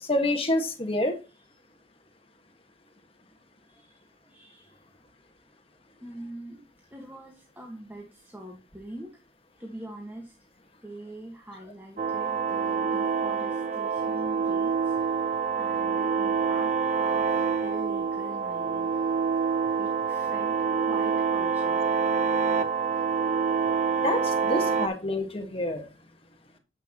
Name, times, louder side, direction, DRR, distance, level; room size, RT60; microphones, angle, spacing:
voice 1, 0.1-1.1 24.0-25.8, left 1 dB, 30° left, 6 dB, 1.5 m, -27 dB
voice 2, 4.3-4.8 6.0-6.6 6.9-9.1 9.6-10.3 10.8-15.0 15.6-16.7 17.0-18.9 19.8-20.5 20.8-21.8, right 1 dB, 10° right, 0 dB, 1.4 m, -43 dB
sound 1, 12.0-24.9, right 6 dB, 35° right, 0.7 m, -26 dB
10.0 x 8.1 x 2.9 m, 0.29 s
head